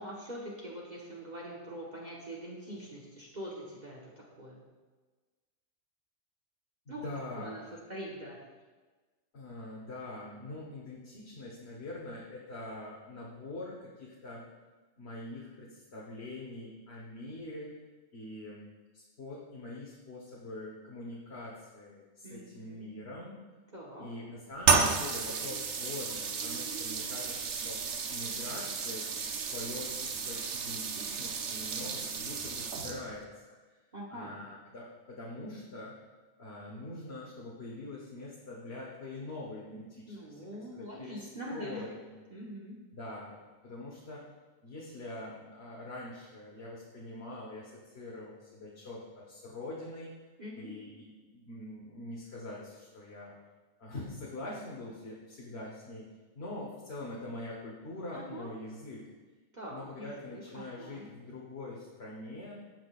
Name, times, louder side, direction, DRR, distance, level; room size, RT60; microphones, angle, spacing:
voice 1, 0.0-4.6 6.9-7.1 7.3-8.4 22.2-22.9 23.7-24.1 33.9-34.3 40.1-41.9 42.3-42.8 50.4-50.7 58.1-58.5 59.5-61.1, equal, 35° right, -4 dB, 1.3 m, -43 dB
voice 2, 6.9-7.6 9.3-14.5 15.0-17.7 18.1-18.6 18.9-23.4 24.0-27.8 28.1-29.0 29.5-33.8 34.1-35.9 36.4-40.1 40.7-42.2 42.9-44.2 44.6-50.1 50.6-53.3 53.8-56.0 56.3-59.0 59.7-62.6, left 2 dB, 55° left, -4 dB, 1.5 m, -44 dB
sound 1, 24.6-33.2, right 5 dB, 65° right, 1.0 m, -32 dB
17.0 x 6.1 x 2.4 m, 1.3 s
omnidirectional pair, 1.4 m